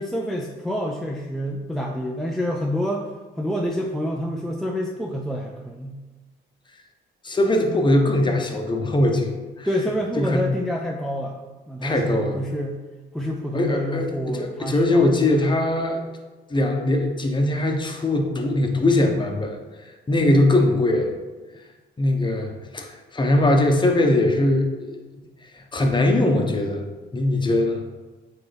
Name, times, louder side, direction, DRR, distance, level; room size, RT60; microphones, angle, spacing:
voice 1, 0.0-3.1 3.4-6.0 9.6-12.8 13.1-15.3 27.5-27.6, equal, ahead, -1 dB, 0.5 m, -27 dB
voice 2, 7.2-9.7 10.2-10.5 11.8-12.3 13.5-16.0 16.5-19.6 20.1-21.1 22.0-25.2 25.6-26.8 27.1-27.8, left 1 dB, 25° left, 3 dB, 1.0 m, -21 dB
8.8 x 3.5 x 3.4 m, 1.2 s
cardioid pair, 90°, 20 cm